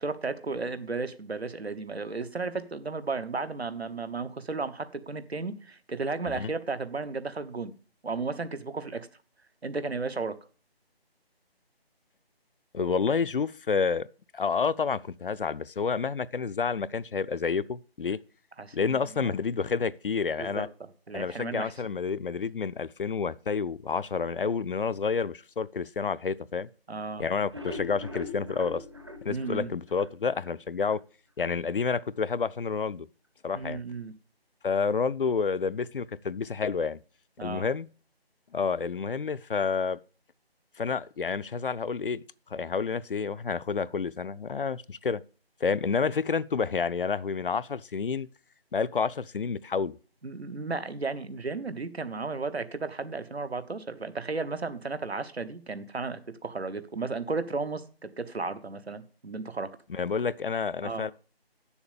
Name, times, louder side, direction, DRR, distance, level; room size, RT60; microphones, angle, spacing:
voice 1, 0.0-7.7 8.0-9.1 9.6-10.4 18.6-19.4 20.4-20.7 21.1-21.7 26.9-27.2 29.3-29.7 33.5-34.1 37.4-37.7 50.2-59.8 60.8-61.1, right 4 dB, 85° right, 1.2 m, -34 dB
voice 2, 12.7-14.1 14.3-18.2 18.7-20.7 21.1-26.7 27.2-28.8 29.2-31.0 31.4-33.1 33.4-33.8 34.6-37.0 37.4-37.9 38.5-40.0 40.8-42.2 42.5-45.2 45.6-48.3 48.7-50.0 59.9-61.1, left 5 dB, 60° left, 0.4 m, -29 dB
sound 1, 27.5-30.6 30.9-31.0 31.4-31.5 31.9-32.0, left 2 dB, 25° right, 0.7 m, -41 dB
7.6 x 7.1 x 6.7 m
figure-of-eight pair, 165°, 31 cm